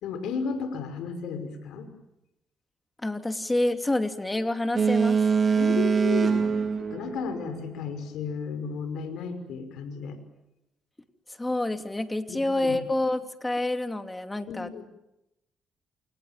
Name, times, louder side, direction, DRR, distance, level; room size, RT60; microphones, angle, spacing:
voice 1, 0.0-1.9 5.6-6.5 6.8-10.2 12.3-12.8 14.5-14.8, left 5 dB, 85° left, 9 dB, 5.6 m, -34 dB
voice 2, 3.0-5.2 11.4-14.8, left 2 dB, 15° left, 7 dB, 2.7 m, -28 dB
Boat Water vehicle, 4.7-7.9, right 5 dB, 40° right, 3.0 m, -24 dB
28.5 x 28.0 x 7.5 m, 0.89 s
cardioid pair, 90°, 0 cm